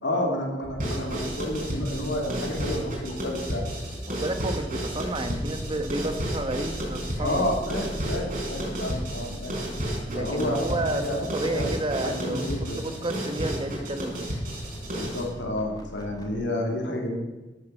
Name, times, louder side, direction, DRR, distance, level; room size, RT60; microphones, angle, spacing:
voice 1, 0.0-3.7 7.2-9.5 10.1-11.6 12.0-12.8 14.9-17.2, left 1 dB, 80° left, 1 dB, 2.9 m, -30 dB
sound 1, 0.6-16.4, equal, 20° left, 1.6 m, -40 dB
sound 2, 0.8-15.3, right 1 dB, 50° right, 4.3 m, -32 dB
voice 2, 4.1-7.5 10.1-11.1 11.3-14.3, right 1 dB, 30° right, 7 dB, 1.2 m, -31 dB
12.5 x 8.4 x 6.6 m, 1.1 s
head